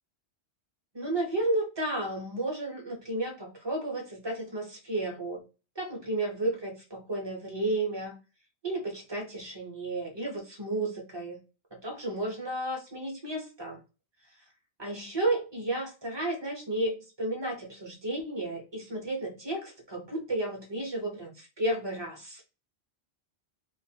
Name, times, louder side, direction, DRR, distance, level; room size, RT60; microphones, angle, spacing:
voice 1, 0.9-5.4 5.8-8.2 8.6-11.4 11.7-13.8 14.8-22.4, right 2 dB, 35° right, 1 dB, 0.4 m, -32 dB
2.4 x 2.2 x 2.6 m, 0.31 s
omnidirectional pair, 1.1 m